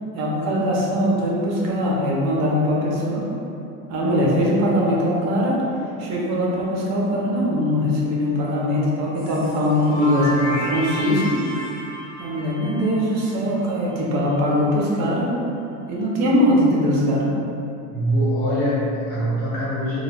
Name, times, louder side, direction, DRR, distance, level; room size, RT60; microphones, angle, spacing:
voice 1, 0.1-3.3 3.9-5.6 6.0-11.4 12.2-15.3 15.9-17.3, equal, 45° right, -4 dB, 0.6 m, -21 dB
sound 1, 9.1-13.9, equal, 25° left, 0.7 m, -32 dB
voice 2, 17.9-20.0, equal, 65° left, -9 dB, 1.2 m, -23 dB
2.2 x 2.0 x 3.1 m, 2.7 s
cardioid pair, 150°, 38 cm